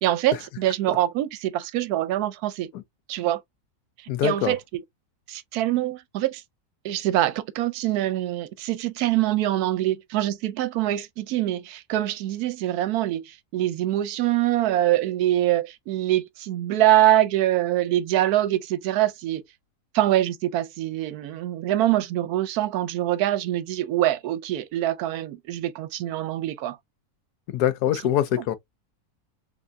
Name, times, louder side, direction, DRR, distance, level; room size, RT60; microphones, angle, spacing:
voice 1, 0.0-2.7 3.1-3.4 4.2-4.8 5.3-6.4 6.8-19.4 19.9-26.8, right 14 dB, 80° right, 1.1 m, -24 dB
voice 2, 4.1-4.5 27.5-28.5, left 11 dB, 85° left, 1.2 m, -23 dB
3.4 x 3.4 x 2.5 m
omnidirectional pair, 1.6 m